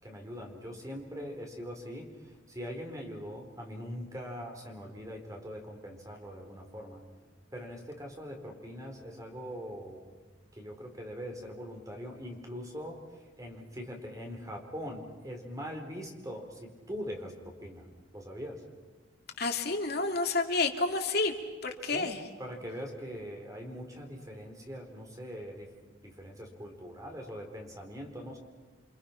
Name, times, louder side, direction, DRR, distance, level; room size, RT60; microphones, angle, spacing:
voice 1, 0.0-7.0 7.5-10.0 10.5-17.9 18.1-18.6 21.9-25.7 26.0-28.4, equal, 15° right, 2 dB, 4.3 m, -42 dB
voice 2, 19.4-21.3 21.6-22.2, left 3 dB, 50° left, 4 dB, 2.8 m, -29 dB
30.0 x 25.5 x 5.9 m, 1.4 s
head